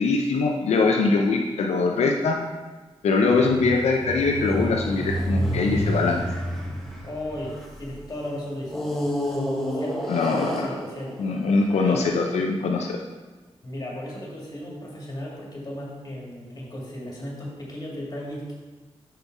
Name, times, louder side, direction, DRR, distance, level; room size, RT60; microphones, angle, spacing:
voice 1, 0.0-2.4 3.0-6.2 10.1-10.5 11.2-13.0, left 4 dB, 85° left, 1 dB, 0.6 m, -22 dB
sound 1, 3.2-7.9 8.7-12.1, equal, 5° left, 1.3 m, -29 dB
voice 2, 7.0-8.8 9.7-11.3 11.7-12.1 13.6-18.6, left 1 dB, 35° left, -4 dB, 2.3 m, -35 dB
5.7 x 5.4 x 4.7 m, 1.3 s
cardioid pair, 85°, 11 cm